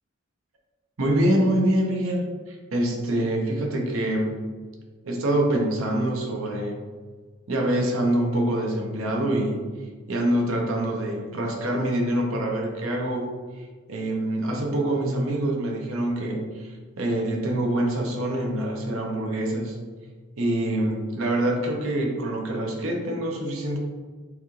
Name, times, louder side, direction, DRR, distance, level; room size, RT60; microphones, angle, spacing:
voice 1, 1.0-4.4 5.0-6.8 7.5-9.6 10.1-13.3 13.6-19.8 20.4-23.8, right 1 dB, 80° right, 0 dB, 0.9 m, -25 dB
6.2 x 2.5 x 3.2 m, 1.5 s
head